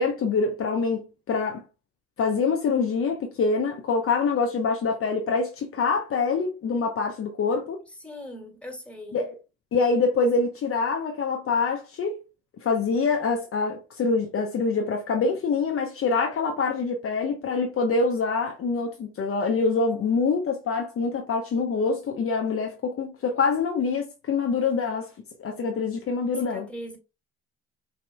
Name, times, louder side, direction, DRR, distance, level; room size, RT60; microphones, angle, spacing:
voice 1, 0.0-1.6 2.2-7.8 9.1-9.3 9.7-12.2 12.6-25.1 25.4-26.7, left 4 dB, 45° left, 0.9 m, -25 dB
voice 2, 8.0-9.2 26.4-27.0, equal, 5° left, 2.1 m, -40 dB
6.1 x 2.9 x 2.2 m
hypercardioid pair, 60°, 31 cm